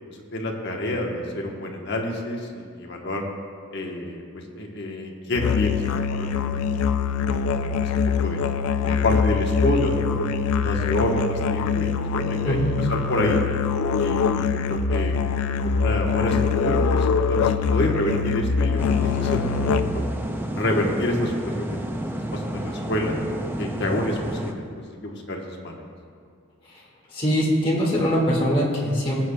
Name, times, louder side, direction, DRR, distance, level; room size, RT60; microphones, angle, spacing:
voice 1, 0.3-3.2 3.7-6.8 7.5-8.4 8.8-10.3 10.5-13.4 14.0-15.1 15.6-16.4 16.6-18.8 19.1-20.0 20.5-21.7 22.3-23.1 23.6-24.7 25.0-25.8, left 1 dB, 55° left, 0 dB, 1.1 m, -28 dB
Musical instrument, 5.3-20.1, left 5 dB, 85° left, 0.4 m, -23 dB
sound 1, 18.8-24.5, right 1 dB, 10° right, 0.4 m, -30 dB
voice 2, 27.1-29.2, equal, 25° left, -5 dB, 1.8 m, -22 dB
18.5 x 8.1 x 2.2 m, 2.2 s
head